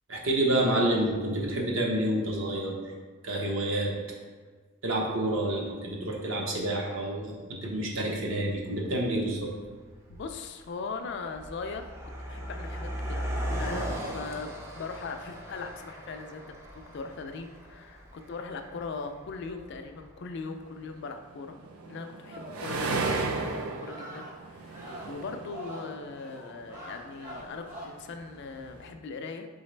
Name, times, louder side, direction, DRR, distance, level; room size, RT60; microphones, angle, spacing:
voice 1, 0.1-2.7 3.2-3.9 4.8-9.5, right 1 dB, 65° right, -1 dB, 0.8 m, -28 dB
Car passing by, 9.4-9.6 9.9-20.3, equal, 10° right, 0.4 m, -38 dB
voice 2, 10.1-11.8 12.3-16.5 16.7-21.6 21.9-29.5, left 4 dB, 55° left, 6 dB, 0.3 m, -40 dB
sound 1, 21.1-26.8 27.1-28.8, right 3 dB, 85° right, 0.5 m, -34 dB
sound 2, 22.3-27.9, equal, 35° right, 0.9 m, -45 dB
4.0 x 3.9 x 3.2 m, 1.5 s
head